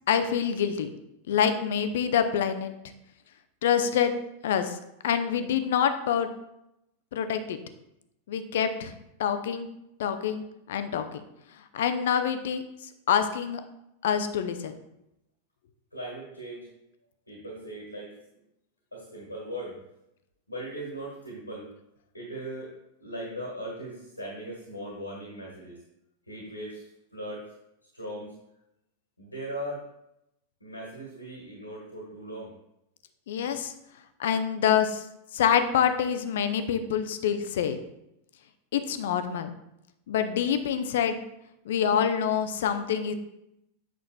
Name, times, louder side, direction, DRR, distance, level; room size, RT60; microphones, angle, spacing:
voice 1, 0.1-0.9 1.3-2.7 3.6-4.1 4.4-4.8 5.0-6.3 7.1-7.6 8.3-8.9 9.2-9.7 10.0-11.2 11.7-12.6 13.1-13.6 14.0-14.7 33.3-33.7 34.2-35.0 35.3-37.8 38.7-39.5 40.1-41.2 41.7-43.1, left 8 dB, 60° left, 9 dB, 0.5 m, -26 dB
voice 2, 15.9-16.7 17.3-18.2 18.9-19.8 20.5-21.7 22.1-22.7 23.0-25.8 26.3-27.4 27.9-28.3 29.2-29.8 30.6-32.5, right 1 dB, 85° left, -3 dB, 1.7 m, -38 dB
8.3 x 5.9 x 2.3 m, 0.84 s
figure-of-eight pair, 90°, 0 cm